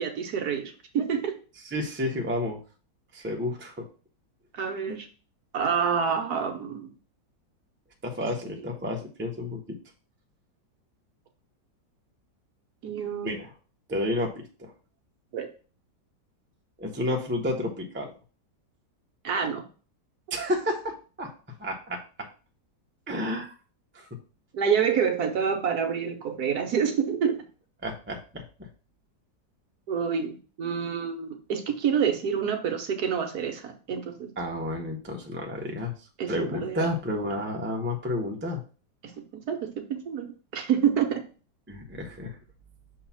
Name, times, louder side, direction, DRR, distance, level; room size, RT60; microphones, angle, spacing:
voice 1, 0.0-1.3 4.5-5.1 5.5-6.9 12.8-13.4 15.3-15.5 19.2-19.6 24.5-27.4 29.9-34.3 36.2-36.9 39.5-40.3 40.5-41.2, right 7 dB, 65° right, 5 dB, 1.3 m, -27 dB
voice 2, 1.6-2.6 3.1-3.9 4.9-5.0 8.0-9.8 13.2-13.5 13.9-14.7 16.8-18.1 20.3-21.3 21.6-22.3 23.1-23.5 23.9-24.1 27.8-28.7 34.4-35.9 36.3-38.6 41.7-42.3, left 1 dB, 10° right, 0 dB, 0.5 m, -31 dB
6.3 x 2.9 x 5.6 m, 0.37 s
omnidirectional pair, 2.0 m